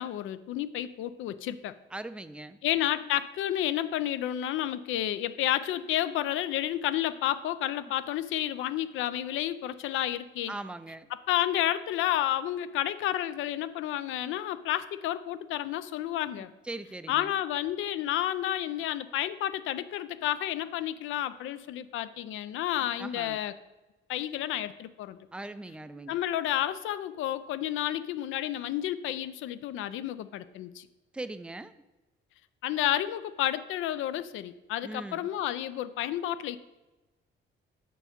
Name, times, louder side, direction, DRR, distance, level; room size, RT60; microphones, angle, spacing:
voice 1, 0.0-1.7 2.6-10.5 11.3-16.5 17.1-23.5 24.1-25.2 26.1-30.9 32.6-36.6, left 12 dB, 85° left, 14 dB, 0.4 m, -31 dB
voice 2, 1.9-2.6 10.5-11.1 16.6-17.3 23.0-23.4 25.3-26.2 31.1-31.7 34.8-35.3, right 2 dB, 5° right, 13 dB, 0.3 m, -40 dB
6.0 x 4.7 x 5.1 m, 1.1 s
cardioid pair, 90°, 20 cm